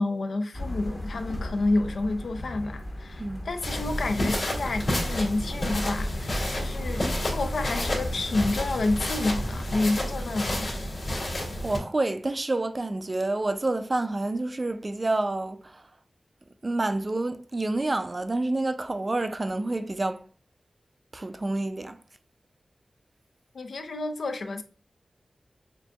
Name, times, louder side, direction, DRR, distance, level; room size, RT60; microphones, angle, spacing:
voice 1, 0.0-10.7 23.5-24.6, left 2 dB, 85° left, 0.5 m, -29 dB
sound 1, 0.5-9.6, left 1 dB, 30° left, 0.9 m, -36 dB
voice 2, 3.2-3.5 6.6-6.7 11.2-11.3 11.6-15.9 16.6-20.3 21.1-22.0, right 2 dB, 35° right, 0.3 m, -28 dB
sound 2, 3.6-11.8, left 1 dB, 60° left, 2.2 m, -31 dB
6.8 x 2.6 x 2.3 m
wide cardioid pair, 105°, 0 cm